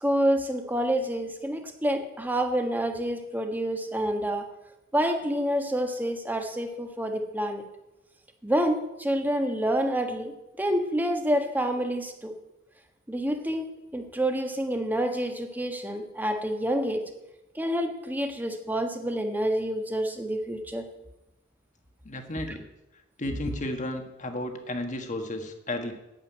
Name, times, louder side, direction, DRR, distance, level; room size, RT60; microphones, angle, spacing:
voice 1, 0.0-4.4 4.9-7.6 8.4-10.3 10.6-12.3 13.1-17.0 17.5-20.8, equal, 10° right, 4 dB, 1.3 m, -28 dB
voice 2, 22.0-22.7 23.2-25.9, left 1 dB, 40° left, 5 dB, 1.5 m, -33 dB
9.0 x 8.1 x 8.9 m, 0.95 s
head